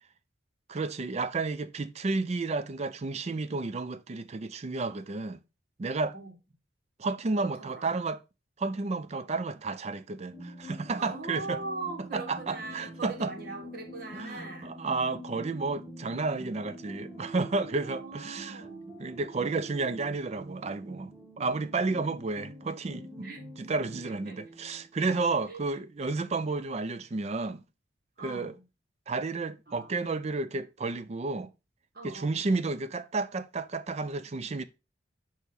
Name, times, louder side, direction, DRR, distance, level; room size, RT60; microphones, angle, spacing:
voice 1, 0.7-5.4 5.8-6.1 7.0-8.2 8.6-11.6 12.1-13.3 14.1-18.6 19.0-23.3 23.7-27.6 28.2-28.5 29.1-31.5 32.0-34.6, right 3 dB, 35° right, 0.4 m, -32 dB
voice 2, 7.4-8.0 11.0-14.8 17.4-18.9 23.2-23.4 24.0-24.4 25.1-25.2 25.5-25.6 28.2-28.6 29.7-29.9 31.9-32.4, right 3 dB, 50° right, 1.6 m, -41 dB
sound 1, 10.3-25.0, equal, 10° right, 1.2 m, -46 dB
8.2 x 3.0 x 3.8 m
head